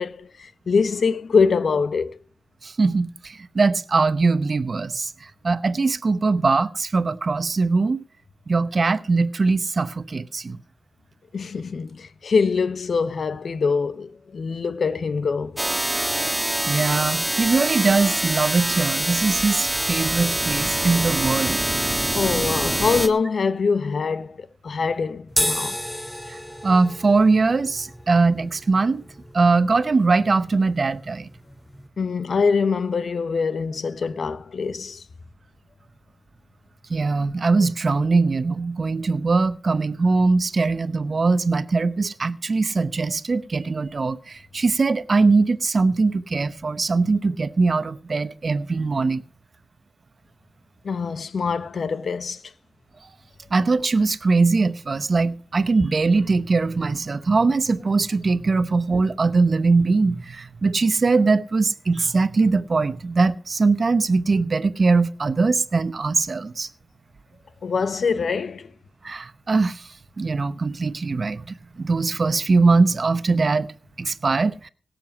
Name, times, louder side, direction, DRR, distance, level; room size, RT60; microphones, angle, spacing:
voice 1, 0.0-2.1 11.3-15.6 22.1-25.8 32.0-35.0 50.8-52.4 67.6-68.7, left 5 dB, 70° left, 0.9 m, -24 dB
voice 2, 2.6-5.1 5.4-8.0 8.5-10.6 16.7-21.6 26.3-29.0 29.3-31.3 36.9-49.2 53.5-66.7 69.0-69.8 70.2-73.7 74.0-74.7, right 3 dB, 55° right, 0.9 m, -21 dB
sound 1, 15.6-23.1, right 1 dB, 15° right, 1.6 m, -24 dB
sound 2, 25.3-31.9, equal, 10° left, 3.1 m, -32 dB
17.5 x 7.6 x 6.1 m
cardioid pair, 50°, 0 cm